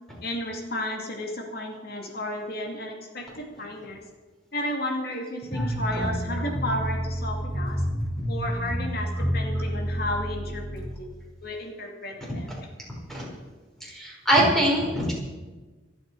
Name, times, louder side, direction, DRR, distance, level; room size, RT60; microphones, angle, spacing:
voice 1, 0.2-4.0 4.5-7.8 8.3-11.1 11.4-12.5, left 1 dB, 55° left, 2 dB, 2.4 m, -33 dB
sound 1, 5.5-10.8, equal, 30° left, 6.6 m, -29 dB
voice 2, 13.8-15.1, right 1 dB, ahead, -4 dB, 4.8 m, -23 dB
26.5 x 8.8 x 4.8 m, 1.3 s
head